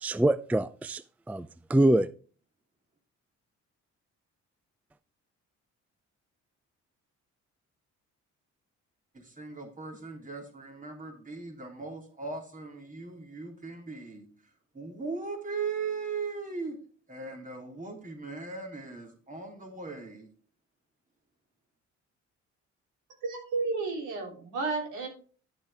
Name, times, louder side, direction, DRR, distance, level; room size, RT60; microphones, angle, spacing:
voice 1, 0.0-2.1, right 1 dB, 5° right, 0.4 m, -25 dB
voice 2, 9.1-14.3 14.7-16.7 17.1-20.3, right 4 dB, 25° right, 3.3 m, -38 dB
voice 3, 23.2-25.1, right 3 dB, 90° right, 3.5 m, -32 dB
11.0 x 7.3 x 3.5 m
cardioid pair, 90°, 30 cm